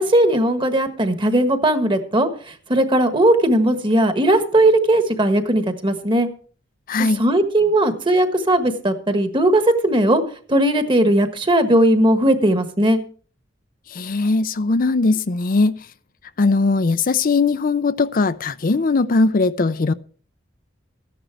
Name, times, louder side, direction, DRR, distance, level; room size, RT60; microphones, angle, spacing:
voice 1, 0.0-2.3 2.7-6.3 7.2-10.2 10.5-13.0, right 1 dB, 25° right, 1.4 m, -17 dB
voice 2, 6.9-7.2 13.9-15.8 16.4-19.9, left 3 dB, 45° left, 0.5 m, -19 dB
14.0 x 10.5 x 4.5 m
head